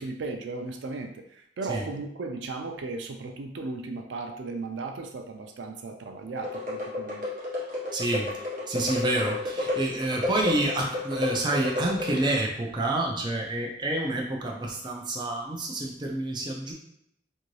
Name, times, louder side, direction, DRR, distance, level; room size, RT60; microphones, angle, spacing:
voice 1, 0.0-7.2, right 3 dB, 85° right, 5 dB, 0.4 m, -36 dB
sound 1, 6.4-12.4, left 2 dB, 50° right, 1.0 m, -31 dB
voice 2, 7.9-8.3 8.7-16.7, right 1 dB, 25° right, 0 dB, 0.4 m, -28 dB
2.7 x 2.6 x 3.1 m, 0.73 s
head